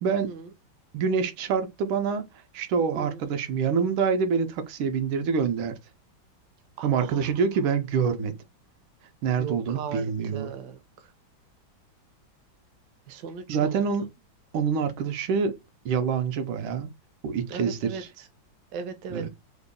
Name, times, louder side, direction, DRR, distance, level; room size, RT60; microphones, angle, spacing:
voice 1, 0.0-0.3 0.9-2.3 2.5-5.8 6.8-8.3 9.2-10.5 13.5-14.1 14.5-15.6 15.8-16.9 17.2-18.0 19.1-19.3, right 6 dB, 85° right, 1.4 m, -26 dB
voice 2, 6.8-7.3 9.4-11.1 13.1-13.9 17.5-18.3 18.7-19.3, right 6 dB, 70° right, 1.2 m, -38 dB
3.8 x 2.1 x 3.5 m
omnidirectional pair, 2.2 m